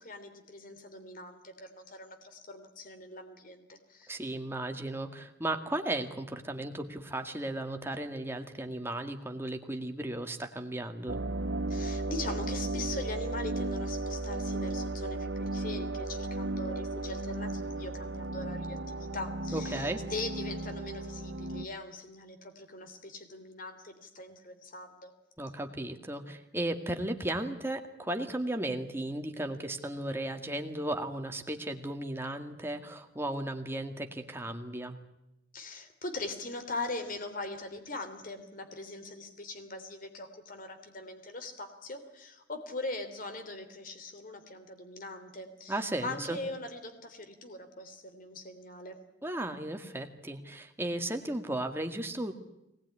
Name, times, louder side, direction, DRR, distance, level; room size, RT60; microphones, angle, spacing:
voice 1, 0.0-4.1 11.7-25.1 35.5-48.9, left 2 dB, 50° left, 7 dB, 3.2 m, -41 dB
voice 2, 4.1-11.2 19.5-20.0 25.4-35.0 45.7-46.4 49.2-52.3, right 1 dB, 15° right, 5 dB, 2.0 m, -35 dB
sound 1, 11.1-21.7, right 2 dB, 85° right, 1.1 m, -35 dB
23.0 x 19.5 x 9.8 m, 0.90 s
head